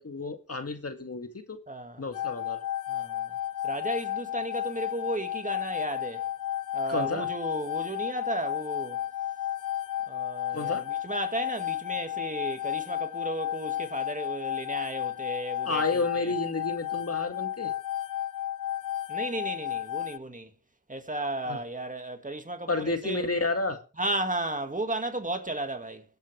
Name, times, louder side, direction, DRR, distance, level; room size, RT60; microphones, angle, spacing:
voice 1, 0.0-1.6 2.0-2.6 6.9-7.3 10.5-10.8 15.7-17.7 21.5-21.6 22.7-23.8, left 3 dB, 45° left, 2.0 m, -31 dB
voice 2, 1.7-2.0 2.9-3.3 3.6-6.2 6.7-9.0 10.1-16.3 19.1-20.5 20.9-23.3 24.0-26.0, right 1 dB, 20° right, 2.0 m, -34 dB
sound 1, 2.1-20.2, left 12 dB, 65° left, 0.5 m, -33 dB
23.0 x 8.2 x 3.4 m
cardioid pair, 55°, 34 cm